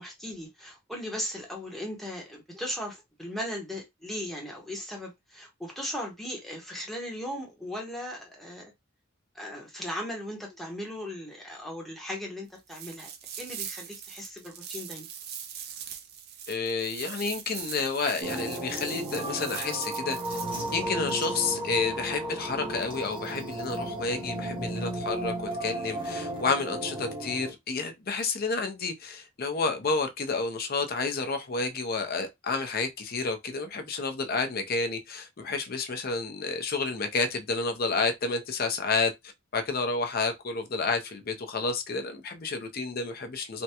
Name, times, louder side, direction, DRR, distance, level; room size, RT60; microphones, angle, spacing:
voice 1, 0.0-8.6 9.3-13.1 13.4-15.1, equal, ahead, 0.9 m, -37 dB
sound 1, 12.7-20.8, right 8 dB, 50° right, 0.5 m, -41 dB
voice 2, 16.5-20.4 20.7-39.1 39.5-43.6, left 4 dB, 45° left, 0.6 m, -30 dB
sound 2, 18.2-27.5, right 1 dB, 25° right, 1.0 m, -34 dB
3.4 x 2.2 x 2.8 m
head